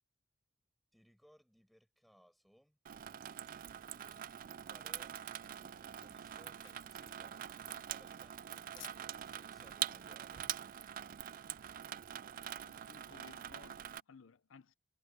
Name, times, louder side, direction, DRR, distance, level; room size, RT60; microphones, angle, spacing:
voice 1, 0.9-2.8 4.6-5.2 5.5-10.5, equal, ahead, 6.3 m, -66 dB
Water tap faucet / Sink (filling or washing), 2.9-14.0, right 10 dB, 45° right, 0.3 m, -44 dB
sound 1, 3.3-11.0, left 12 dB, 70° left, 1.4 m, -64 dB
voice 2, 12.6-14.7, left 5 dB, 85° left, 0.6 m, -59 dB
head